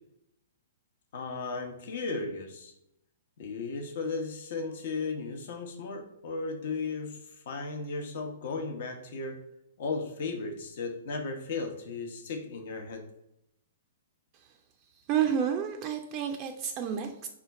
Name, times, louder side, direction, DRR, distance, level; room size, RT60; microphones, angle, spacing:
voice 1, 1.1-2.7 3.4-7.2 7.5-9.4 9.8-13.0, left 4 dB, 60° left, 4 dB, 0.8 m, -35 dB
voice 2, 14.9-17.3, right 8 dB, 35° right, 4 dB, 0.4 m, -30 dB
4.2 x 2.4 x 4.0 m, 0.81 s
hypercardioid pair, 120°, 0 cm